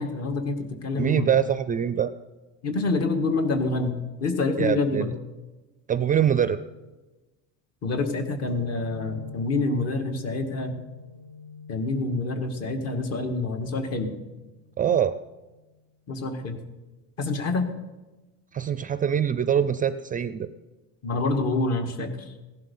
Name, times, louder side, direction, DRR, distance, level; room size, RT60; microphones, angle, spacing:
voice 1, 0.0-1.3 2.6-5.1 7.8-10.7 11.7-14.1 16.1-16.6 17.2-17.7 21.0-22.3, left 3 dB, 50° left, 5 dB, 2.0 m, -27 dB
voice 2, 0.9-2.1 4.6-5.1 5.9-6.6 14.8-15.2 18.5-20.5, right 9 dB, 25° right, 13 dB, 0.4 m, -24 dB
sound 1, 8.5-15.8, left 4 dB, 30° left, 3.5 m, -45 dB
16.5 x 11.5 x 5.5 m, 1.2 s
cardioid pair, 150°, 33 cm